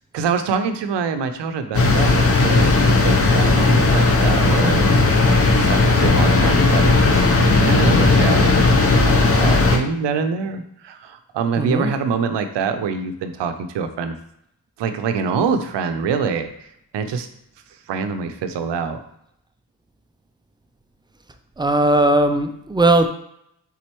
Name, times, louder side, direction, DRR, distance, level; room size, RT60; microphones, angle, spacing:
voice 1, 0.1-5.0 5.5-14.2 14.8-16.5 16.9-17.3 17.9-19.0, right 5 dB, 75° right, 9 dB, 0.6 m, -25 dB
sound 1, 1.7-9.8, left 3 dB, 30° left, 0.7 m, -16 dB
voice 2, 11.6-11.9 21.6-23.1, right 1 dB, 10° right, 7 dB, 0.3 m, -17 dB
4.4 x 3.9 x 3.0 m, 0.75 s
cardioid pair, 75°, 43 cm